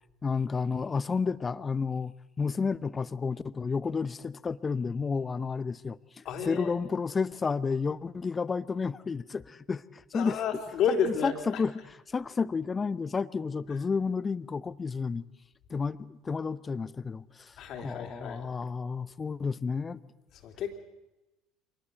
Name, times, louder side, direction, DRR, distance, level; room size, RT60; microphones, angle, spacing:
voice 1, 0.2-2.1 2.4-10.4 11.1-11.8 12.1-15.2 15.7-20.0, left 5 dB, 25° left, 0.9 m, -31 dB
voice 2, 6.2-6.7 10.1-11.6 17.6-18.5 20.4-20.9, left 7 dB, 55° left, 3.2 m, -31 dB
25.0 x 19.5 x 8.1 m
hypercardioid pair, 65°, 0 cm